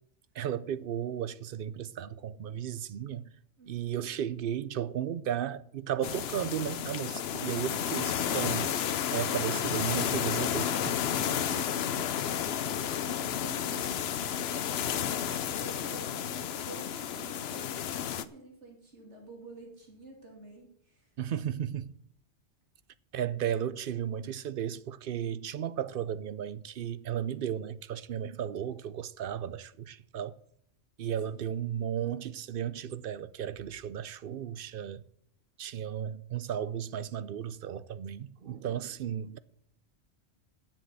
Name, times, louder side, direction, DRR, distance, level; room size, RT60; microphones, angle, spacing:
voice 1, 0.3-3.3 3.7-8.8 9.1-11.0 21.2-21.9 23.1-30.4 31.0-35.0 35.6-39.4, right 9 dB, 60° right, 0.7 m, -34 dB
voice 2, 3.6-4.1 7.6-8.1 11.1-12.0 12.4-21.4 28.2-28.5 31.2-31.4, right 2 dB, 80° right, 3.0 m, -50 dB
sound 1, 6.0-18.2, left 9 dB, 65° left, 0.9 m, -32 dB
10.0 x 7.3 x 8.1 m
omnidirectional pair, 1.2 m